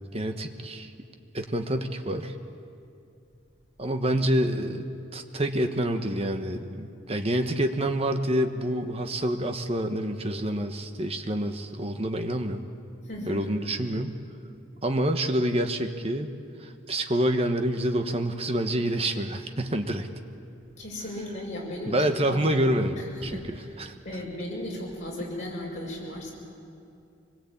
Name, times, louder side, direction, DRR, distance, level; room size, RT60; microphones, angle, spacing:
voice 1, 0.1-0.9 1.3-2.3 3.8-12.6 13.3-14.2 14.8-16.3 16.6-20.1 21.9-23.9, right 1 dB, 30° right, 6 dB, 1.3 m, -27 dB
voice 2, 13.0-13.5 20.8-22.6 23.0-23.6 24.0-26.3, left 1 dB, 40° left, -3 dB, 6.5 m, -36 dB
24.5 x 21.0 x 8.7 m, 2.5 s
head